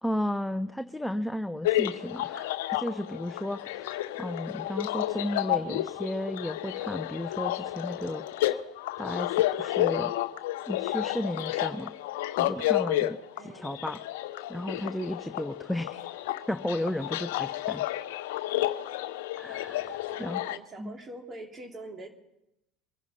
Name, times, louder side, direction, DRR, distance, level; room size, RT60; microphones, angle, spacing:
voice 1, 0.0-8.2 9.0-10.1 10.7-11.9 12.4-14.0 14.5-16.1 16.5-17.8 19.3-20.5 20.8-21.0, left 1 dB, 5° left, 9 dB, 0.6 m, -34 dB
sound 1, 1.6-20.6, left 15 dB, 75° left, 0.6 m, -31 dB
voice 2, 13.4-13.8 20.0-22.1, right 2 dB, 35° right, 4 dB, 2.8 m, -44 dB
24.5 x 10.5 x 5.5 m, 0.89 s
hypercardioid pair, 70°, 0 cm